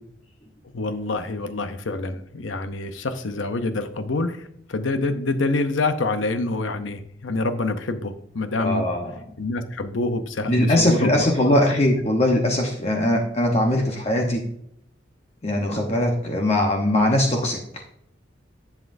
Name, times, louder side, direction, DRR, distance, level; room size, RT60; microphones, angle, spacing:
voice 1, 0.7-8.9 9.4-11.7, left 2 dB, 90° left, 9 dB, 0.7 m, -26 dB
voice 2, 8.6-9.1 10.5-14.4 15.4-17.6, left 1 dB, 35° left, 1 dB, 0.9 m, -21 dB
11.0 x 7.4 x 2.6 m, 0.72 s
head